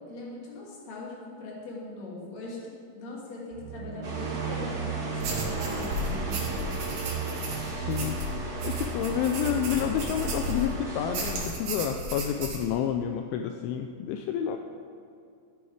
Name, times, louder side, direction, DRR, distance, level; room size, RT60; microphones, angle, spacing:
voice 1, 0.0-7.1, left 2 dB, 40° left, -4 dB, 3.0 m, -41 dB
sound 1, 3.5-11.2, right 6 dB, 90° right, 3.4 m, -37 dB
sound 2, 4.0-11.4, right 2 dB, 75° right, 0.9 m, -37 dB
sound 3, 5.2-10.7 11.1-12.6, right 1 dB, 50° right, 3.1 m, -34 dB
voice 2, 7.7-8.3 8.6-14.6, left 9 dB, 85° left, 5 dB, 2.8 m, -29 dB
15.0 x 10.0 x 5.0 m, 2.5 s
omnidirectional pair, 5.9 m